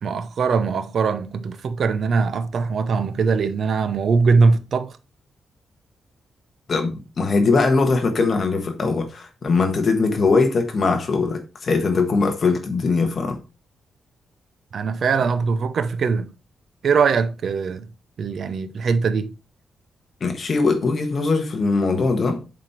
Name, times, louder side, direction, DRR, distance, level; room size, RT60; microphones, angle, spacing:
voice 1, 0.0-5.0 14.7-16.3 16.8-17.9 18.2-19.3, right 5 dB, 50° right, 0.6 m, -21 dB
voice 2, 6.7-13.4 20.2-22.4, left 4 dB, 35° left, 1.4 m, -21 dB
7.4 x 4.3 x 4.5 m
wide cardioid pair, 170°, 0 cm